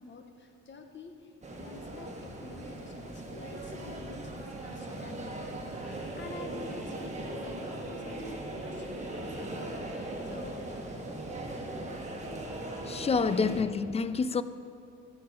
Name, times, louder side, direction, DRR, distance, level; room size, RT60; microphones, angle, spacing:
voice 1, 0.0-11.2 11.5-12.2, left 4 dB, 40° left, 1.1 m, -49 dB
sound 1, 1.4-13.6, right 1 dB, 25° right, 1.5 m, -39 dB
voice 2, 12.9-14.4, left 5 dB, 20° left, 0.4 m, -28 dB
13.0 x 7.0 x 5.4 m
cardioid pair, 90°, 30 cm